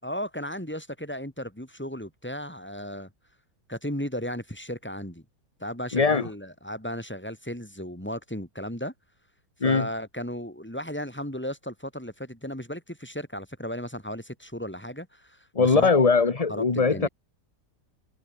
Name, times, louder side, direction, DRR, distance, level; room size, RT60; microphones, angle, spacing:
voice 1, 0.0-3.1 3.7-5.2 5.6-8.9 9.6-15.9 16.5-17.1, equal, 5° left, 5.1 m, -35 dB
voice 2, 5.9-6.3 9.6-9.9 15.5-17.1, left 4 dB, 25° left, 1.2 m, -21 dB
omnidirectional pair, 1.7 m